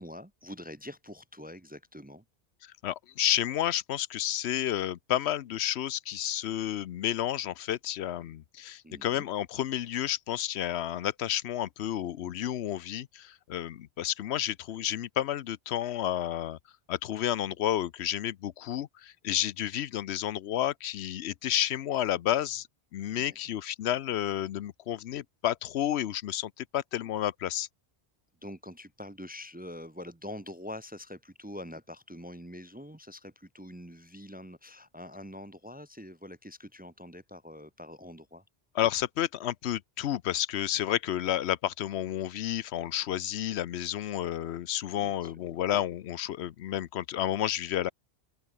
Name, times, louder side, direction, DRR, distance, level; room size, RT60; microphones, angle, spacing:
voice 1, 0.0-2.2 8.8-9.2 23.1-23.4 28.4-38.4 44.9-45.3, left 1 dB, 10° right, 0.5 m, -45 dB
voice 2, 2.6-16.6 16.9-22.7 22.9-27.7 38.7-47.9, left 11 dB, 90° left, 0.9 m, -31 dB
open air
omnidirectional pair, 1.1 m